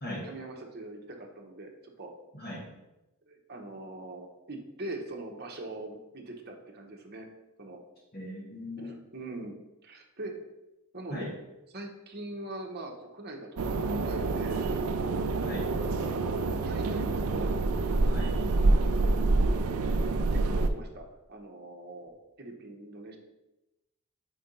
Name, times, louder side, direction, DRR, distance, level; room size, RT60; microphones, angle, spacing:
voice 1, 0.2-2.1 3.3-7.3 7.6-7.8 8.8-9.5 9.8-10.3 10.9-11.3 11.7-14.6 15.3-17.5 20.3-22.1 22.4-23.2, right 2 dB, 45° right, 1 dB, 0.9 m, -42 dB
voice 2, 8.1-9.0 11.1-11.3 15.4-15.7 18.1-18.4, left 1 dB, 45° left, -5 dB, 1.3 m, -38 dB
sound 1, 13.6-20.7, right 3 dB, 80° right, 0.5 m, -27 dB
4.5 x 4.3 x 5.2 m, 0.98 s
head